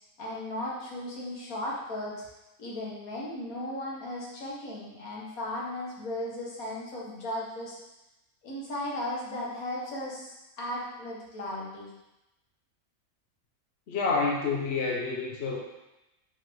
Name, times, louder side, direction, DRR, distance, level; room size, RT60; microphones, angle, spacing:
voice 1, 0.2-2.1 2.6-7.8 8.4-11.9, left 1 dB, 70° left, -4 dB, 1.9 m, -36 dB
voice 2, 13.9-15.6, left 4 dB, 55° left, -1 dB, 1.0 m, -28 dB
5.7 x 5.0 x 3.6 m, 0.95 s
omnidirectional pair, 1.5 m